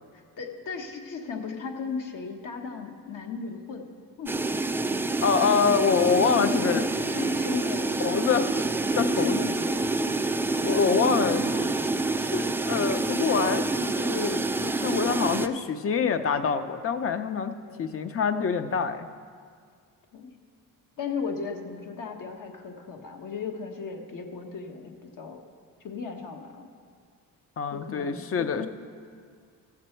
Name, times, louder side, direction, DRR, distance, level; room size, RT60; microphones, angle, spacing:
voice 1, 0.4-3.9 4.2-4.6 4.9-5.1 6.3-8.4 9.0-9.9 10.6-11.7 12.7-13.0 17.6-17.9 20.1-20.3 21.0-25.4 25.8-26.7 27.7-28.7, left 5 dB, 65° left, 3 dB, 1.4 m, -36 dB
sound 1, 4.3-15.5, right 3 dB, 5° right, 0.3 m, -27 dB
voice 2, 5.2-6.9 7.1-7.3 8.0-8.5 9.0-9.4 10.6-11.7 12.2-19.1 27.6-28.7, left 6 dB, 40° left, 10 dB, 0.7 m, -26 dB
14.5 x 7.4 x 4.5 m, 2.1 s
cardioid pair, 90°, 35 cm